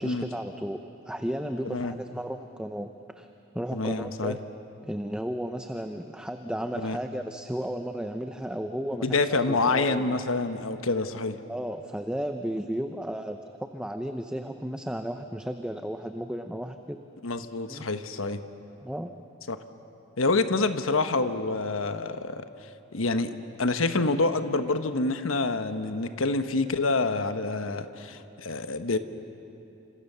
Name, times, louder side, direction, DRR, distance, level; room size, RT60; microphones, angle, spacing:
voice 1, 0.0-2.9 3.2-3.3 3.5-4.4 4.8-10.2 11.5-17.0 17.7-17.8 18.8-19.1, equal, 5° right, 6 dB, 0.7 m, -34 dB
voice 2, 3.7-4.3 6.8-7.0 9.0-11.4 17.2-18.4 19.5-19.6 20.2-22.4 22.9-29.0, left 3 dB, 85° left, 9 dB, 1.2 m, -27 dB
30.0 x 26.5 x 6.9 m, 2.9 s
head